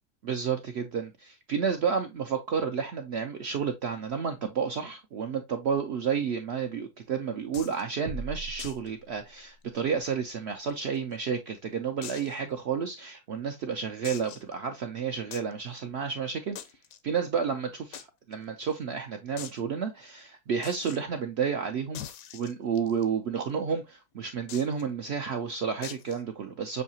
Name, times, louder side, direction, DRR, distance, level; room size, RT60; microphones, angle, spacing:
voice 1, 0.2-16.6 17.0-22.0 22.3-26.8, right 6 dB, 75° right, 0.6 m, -31 dB
sound 1, 7.5-7.8 8.6-8.9 9.1-9.2 9.6-9.7 10.4-11.2 12.0-12.4 12.9-13.0 14.0-14.5 15.3-15.5 16.6-17.0 17.9-18.1 18.3-18.4 18.7-18.8 19.4-19.6 20.6-21.0 21.9-23.0 24.5-24.8 25.8-26.2, left 9 dB, 70° left, 1.0 m, -42 dB
sound 2, 8.1-9.7, right 4 dB, 90° right, 1.2 m, -40 dB
6.4 x 2.7 x 2.7 m
omnidirectional pair, 1.7 m